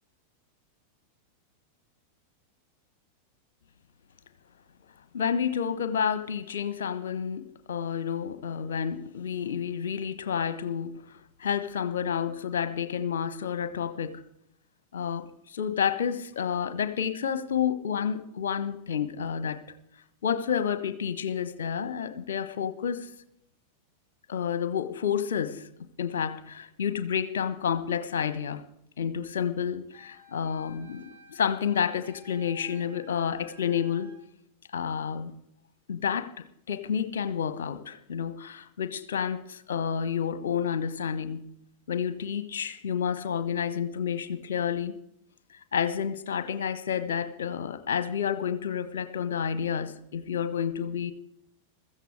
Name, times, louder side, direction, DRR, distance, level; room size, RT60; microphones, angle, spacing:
voice 1, 5.1-11.0 11.4-14.2 14.9-19.7 20.2-23.1 24.3-25.7 26.0-28.6 29.0-34.1 34.7-35.3 35.9-41.4 41.9-44.9 45.7-51.1, left 8 dB, 60° left, 1.2 m, -30 dB
Wind instrument woodwind instrument, 29.9-34.2, right 1 dB, 75° right, 5.5 m, -54 dB
15.5 x 14.5 x 4.8 m
figure-of-eight pair, 90°, 0 cm